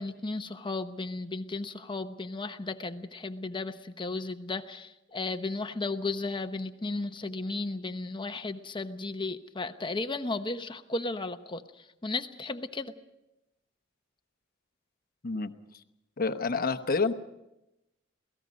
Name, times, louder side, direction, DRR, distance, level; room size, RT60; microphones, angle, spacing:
voice 1, 0.0-12.9, left 3 dB, 25° left, 9 dB, 0.9 m, -34 dB
voice 2, 16.2-17.1, left 4 dB, 50° left, 9 dB, 1.0 m, -28 dB
27.5 x 18.0 x 5.3 m, 0.92 s
head